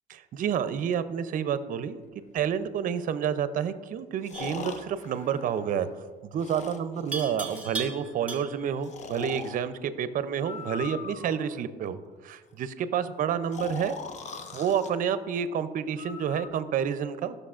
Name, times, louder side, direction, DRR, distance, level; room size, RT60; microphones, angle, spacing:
voice 1, 0.1-2.0 2.3-5.9 6.2-12.0 12.2-14.0 14.5-17.4, right 8 dB, 55° right, 12 dB, 0.5 m, -29 dB
Breathing, 2.4-2.5 4.2-6.0 6.4-7.7 8.8-9.6 10.4-11.6 13.5-14.9 16.0-16.5, left 5 dB, 45° left, 0.8 m, -40 dB
Livestock farm animals working animals, 4.3-4.7 7.1-8.8, right 4 dB, 10° right, 1.1 m, -37 dB
13.5 x 6.5 x 2.5 m, 1.4 s
cardioid pair, 110°, 17 cm